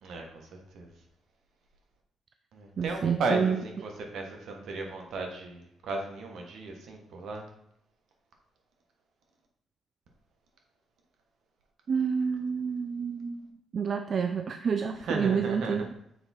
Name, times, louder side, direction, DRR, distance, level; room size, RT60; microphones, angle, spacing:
voice 1, 0.0-0.9 2.5-7.4 15.0-15.8, right 3 dB, 70° right, 2 dB, 1.3 m, -35 dB
voice 2, 2.8-3.6 11.9-15.9, right 6 dB, 50° right, 8 dB, 0.3 m, -29 dB
6.8 x 3.5 x 4.2 m, 0.73 s
cardioid pair, 90°, 0 cm